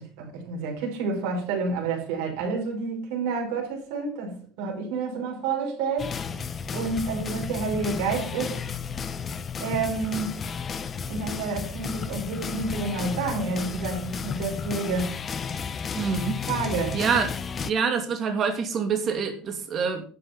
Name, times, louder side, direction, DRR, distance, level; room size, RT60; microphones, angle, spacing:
voice 1, 0.0-6.3 6.7-8.6 9.6-10.5 11.1-15.1 16.5-17.0, right 4 dB, 80° right, 5.2 m, -29 dB
sound 1, 6.0-17.7, left 6 dB, 25° left, 0.7 m, -33 dB
voice 2, 16.0-16.4 16.9-17.3 17.6-20.0, right 6 dB, 35° right, 2.6 m, -26 dB
11.5 x 7.7 x 5.8 m
cardioid pair, 160°, 0 cm